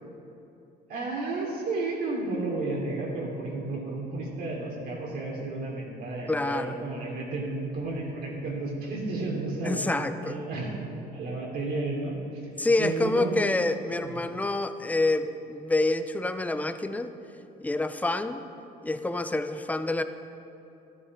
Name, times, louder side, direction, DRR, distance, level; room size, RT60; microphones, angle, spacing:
voice 1, 0.9-9.8 10.2-10.7 11.1-12.2 12.8-13.4 14.0-14.2, right 3 dB, 65° right, -3 dB, 3.2 m, -32 dB
voice 2, 6.3-6.8 9.6-10.4 12.6-17.1 17.6-18.4 18.8-20.0, left 2 dB, 10° left, 10 dB, 0.6 m, -27 dB
13.0 x 11.0 x 5.0 m, 2.8 s
cardioid pair, 110°, 17 cm